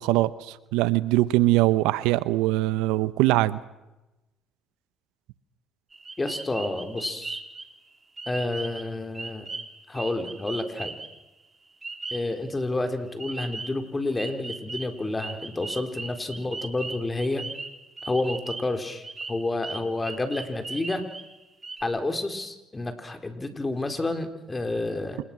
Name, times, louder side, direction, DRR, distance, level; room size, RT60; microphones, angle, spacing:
voice 1, 0.0-3.6, right 17 dB, 80° right, 17 dB, 0.8 m, -22 dB
sound 1, 5.9-7.7 8.2-8.9 9.1-11.2 11.8-12.3 13.2-13.8 14.2-18.8 19.0-21.3 21.6-21.8, right 3 dB, 25° right, 3.5 m, -38 dB
voice 2, 6.2-7.4 8.3-9.5 9.9-11.0 12.1-17.4 18.1-21.0 21.8-25.2, left 2 dB, 20° left, 7 dB, 4.2 m, -29 dB
27.5 x 20.5 x 6.1 m, 0.99 s
supercardioid pair, 70°, 0 cm